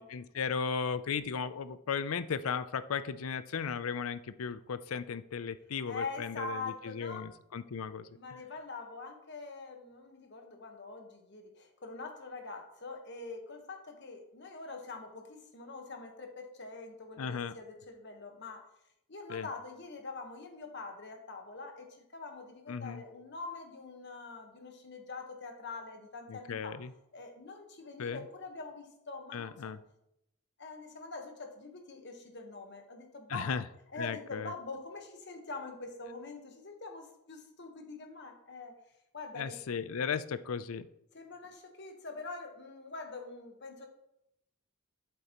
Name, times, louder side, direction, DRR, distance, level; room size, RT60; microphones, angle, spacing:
voice 1, 0.0-8.1 17.2-17.6 19.3-19.5 22.7-23.0 26.3-26.9 28.0-28.2 29.3-29.8 33.3-33.6 34.0-34.5 39.4-40.9, left 6 dB, 80° left, 14 dB, 0.5 m, -36 dB
voice 2, 5.9-7.2 8.1-18.6 19.1-26.7 27.1-29.5 30.6-33.5 33.9-38.7 39.1-39.6 41.1-43.9, left 3 dB, 55° left, 3 dB, 1.3 m, -44 dB
8.2 x 8.0 x 3.0 m, 0.82 s
head